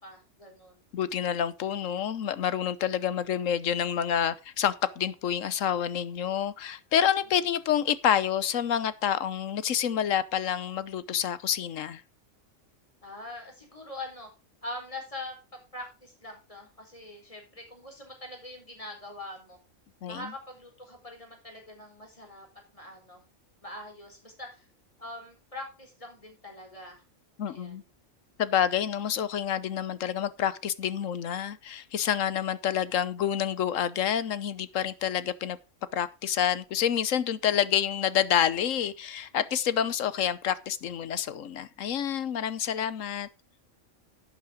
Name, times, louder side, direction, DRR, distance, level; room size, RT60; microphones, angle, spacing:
voice 1, 0.0-0.9 13.0-14.3 14.6-15.4 15.7-19.6 20.1-22.5 22.7-23.2 23.6-24.7 25.0-27.0 27.5-27.9, left 1 dB, 25° left, 4.4 m, -43 dB
voice 2, 0.9-12.0 20.0-20.3 27.4-27.8 28.4-35.6 35.9-43.3, left 9 dB, 80° left, 1.2 m, -28 dB
11.5 x 8.7 x 3.7 m
omnidirectional pair, 1.3 m